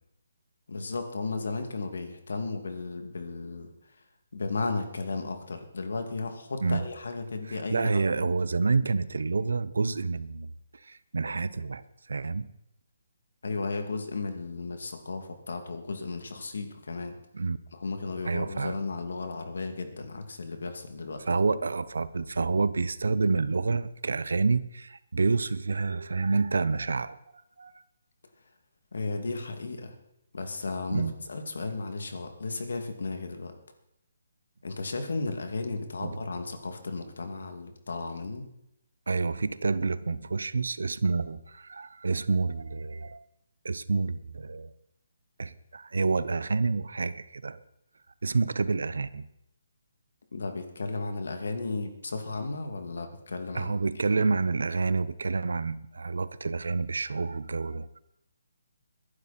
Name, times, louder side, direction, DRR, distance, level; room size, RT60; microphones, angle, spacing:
voice 1, 0.7-3.7 4.3-8.3 13.4-17.2 17.7-21.2 28.9-29.9 30.3-33.5 34.6-38.5 50.3-53.8, left 3 dB, 80° left, 6 dB, 2.6 m, -34 dB
voice 2, 7.5-10.5 10.8-11.8 12.1-12.5 17.3-17.6 18.2-18.8 21.3-27.2 27.6-27.7 30.9-31.1 36.0-36.2 39.1-43.2 43.6-44.7 45.4-47.6 48.2-49.3 53.5-58.0, right 4 dB, 85° right, 16 dB, 0.9 m, -28 dB
21.5 x 11.5 x 4.4 m, 0.80 s
hypercardioid pair, 155°, 0 cm